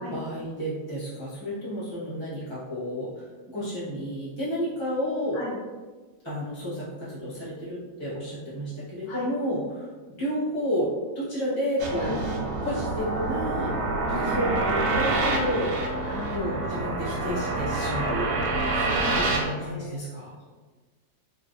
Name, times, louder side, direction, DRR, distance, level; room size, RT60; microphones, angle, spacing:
voice 1, 0.0-3.2 3.5-5.4 6.2-9.9 10.2-10.9 11.1-13.7 14.1-15.8 16.3-18.3 19.1-20.3, equal, 40° right, -11 dB, 0.3 m, -31 dB
sound 1, 11.8-19.4, right 2 dB, 75° right, 1.1 m, -27 dB
voice 2, 16.0-16.4 18.7-19.9, left 2 dB, 60° left, -5 dB, 1.2 m, -37 dB
3.2 x 3.0 x 2.5 m, 1.3 s
omnidirectional pair, 2.1 m